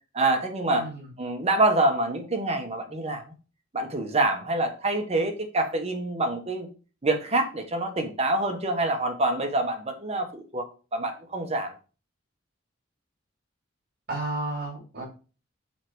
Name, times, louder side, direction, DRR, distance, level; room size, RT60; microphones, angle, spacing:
voice 1, 0.1-0.9 1.2-3.2 3.7-6.7 7.0-10.7 10.9-11.7, right 2 dB, 35° right, 5 dB, 1.2 m, -26 dB
voice 2, 0.7-1.0 14.1-15.0, right 2 dB, 55° right, -4 dB, 3.0 m, -32 dB
5.8 x 4.6 x 4.6 m, 0.35 s
head